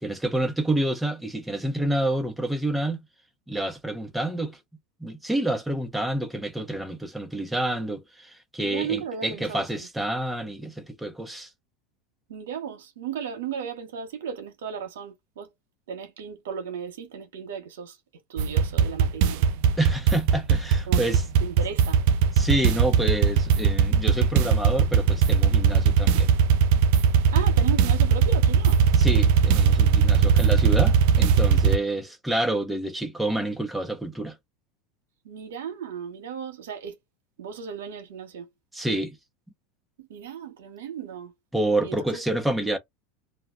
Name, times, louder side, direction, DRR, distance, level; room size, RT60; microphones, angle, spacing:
voice 1, 0.0-3.0 3.5-4.6 5.0-11.5 19.8-21.2 22.4-26.3 28.9-34.4 38.7-39.2 41.5-42.8, right 1 dB, 5° right, 0.7 m, -28 dB
voice 2, 8.6-9.9 12.3-15.5 15.9-19.4 20.9-22.0 27.3-28.8 35.2-37.0 37.4-38.5 40.0-41.3 41.8-42.2, right 7 dB, 85° right, 0.8 m, -35 dB
sound 1, 18.4-31.8, right 7 dB, 65° right, 0.4 m, -20 dB
2.3 x 2.1 x 3.6 m
hypercardioid pair, 105°, 0 cm